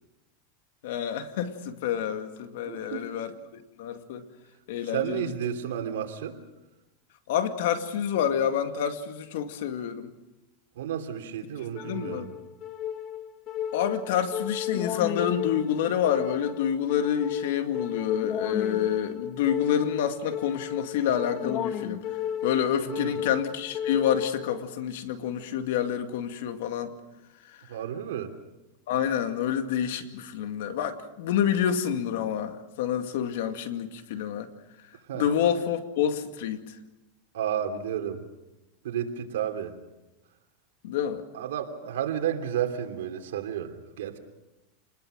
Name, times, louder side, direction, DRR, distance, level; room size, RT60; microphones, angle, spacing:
voice 1, 0.8-3.3 3.8-4.2 4.7-5.3 7.3-10.1 11.8-12.3 13.7-22.0 22.4-26.9 28.9-34.5 35.1-36.7 40.8-41.2, left 9 dB, 70° left, 8 dB, 2.2 m, -28 dB
voice 2, 2.6-3.1 4.8-6.3 10.7-12.3 22.8-23.2 27.7-28.3 35.1-35.3 37.3-38.2 38.8-39.8 41.3-44.2, right 9 dB, 85° right, 5 dB, 3.0 m, -32 dB
sound 1, 11.7-24.7, left 9 dB, 35° left, 1.6 m, -34 dB
27.5 x 20.5 x 6.3 m, 1.0 s
supercardioid pair, 140°, 0 cm